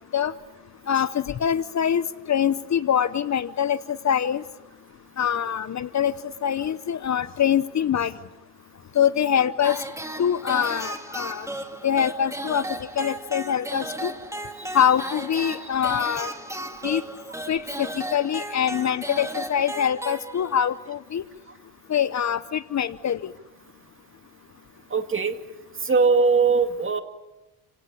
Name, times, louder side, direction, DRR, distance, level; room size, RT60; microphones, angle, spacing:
voice 1, 0.9-4.4 5.2-6.1 6.4-8.1 8.9-9.8 10.2-11.5 11.8-14.1 14.7-16.3 16.8-17.0 17.5-21.2 21.9-23.3, left 8 dB, 40° left, 15 dB, 0.9 m, -24 dB
sound 1, 9.6-20.7, right 1 dB, 5° right, 2.7 m, -35 dB
voice 2, 24.9-25.4 25.8-27.0, right 4 dB, 30° right, 7 dB, 2.3 m, -21 dB
29.0 x 17.5 x 8.4 m, 1.1 s
cardioid pair, 90°, 42 cm